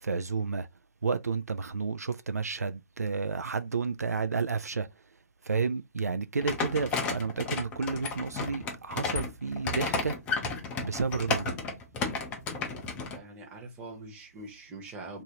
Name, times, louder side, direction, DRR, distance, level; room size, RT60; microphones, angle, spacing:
voice 1, 0.0-0.7 1.0-4.9 5.4-10.2 10.8-11.6, right 4 dB, 75° right, 0.4 m, -31 dB
sound 1, 6.4-13.2, left 4 dB, 15° left, 0.5 m, -33 dB
voice 2, 13.1-15.2, right 2 dB, 15° right, 0.9 m, -43 dB
3.1 x 2.6 x 2.8 m
figure-of-eight pair, 140°, 8 cm